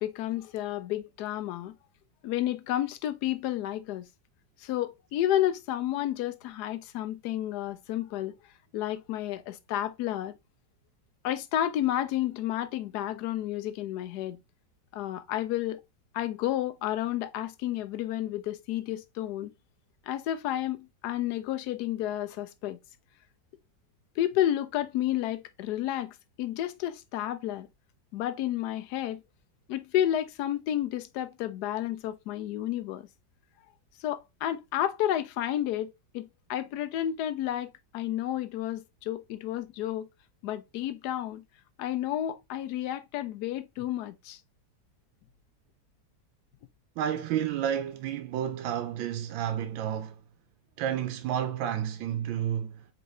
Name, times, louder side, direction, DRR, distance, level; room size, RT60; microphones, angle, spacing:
voice 1, 0.0-1.7 2.2-4.1 4.6-8.4 8.7-10.4 11.2-14.4 14.9-15.8 16.1-19.5 20.1-22.8 24.2-27.7 28.1-29.2 29.7-33.1 34.0-40.1 40.4-41.4 41.8-44.4, left 12 dB, 70° left, 1.0 m, -31 dB
voice 2, 47.0-50.2 50.8-52.9, right 10 dB, 80° right, 1.3 m, -31 dB
4.7 x 3.7 x 2.5 m
omnidirectional pair, 2.1 m